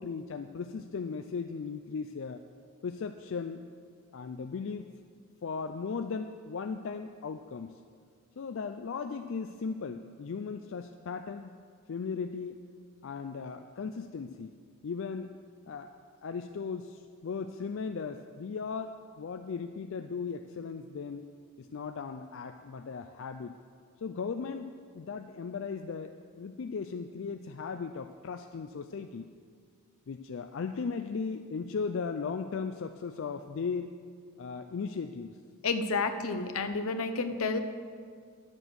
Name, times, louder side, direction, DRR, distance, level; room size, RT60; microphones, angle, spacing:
voice 1, 0.0-2.4 2.8-3.6 4.1-4.9 5.4-7.8 8.4-11.5 11.9-12.6 13.0-14.5 14.8-15.4 15.7-16.0 16.2-21.3 21.6-23.6 24.0-29.3 30.1-33.9 34.4-35.4, left 5 dB, 60° left, 8 dB, 0.4 m, -37 dB
voice 2, 35.6-37.6, left 4 dB, 80° left, 8 dB, 0.8 m, -30 dB
11.0 x 7.5 x 6.4 m, 2.1 s
head